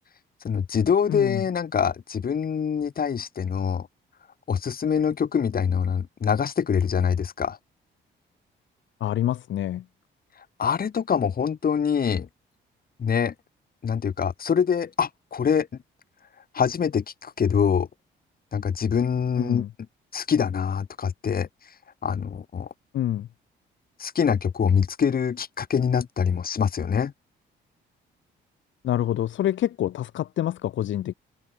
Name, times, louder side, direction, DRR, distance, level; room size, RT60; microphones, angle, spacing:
voice 1, 0.4-3.9 4.5-7.6 10.6-12.3 13.0-13.3 13.8-15.7 16.5-17.9 18.5-19.6 20.1-21.5 22.0-22.7 24.0-27.1, left 7 dB, 50° left, 5.5 m, -24 dB
voice 2, 1.1-1.4 9.0-9.8 19.4-19.7 22.9-23.3 28.8-31.1, left 12 dB, 70° left, 2.4 m, -26 dB
cardioid pair, 90°, 20 cm